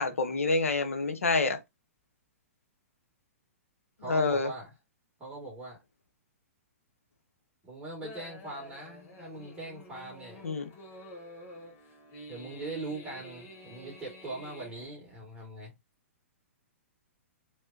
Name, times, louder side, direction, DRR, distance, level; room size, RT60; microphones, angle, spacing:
voice 1, 0.0-1.6 4.0-4.5 10.4-10.7, left 3 dB, 80° left, 0.8 m, -27 dB
voice 2, 4.0-4.7 5.2-5.8 7.6-10.4 12.3-15.7, right 2 dB, 15° right, 1.9 m, -41 dB
sound 1, 8.0-14.8, equal, 35° left, 1.8 m, -48 dB
3.4 x 3.2 x 2.6 m
figure-of-eight pair, 115°, 7 cm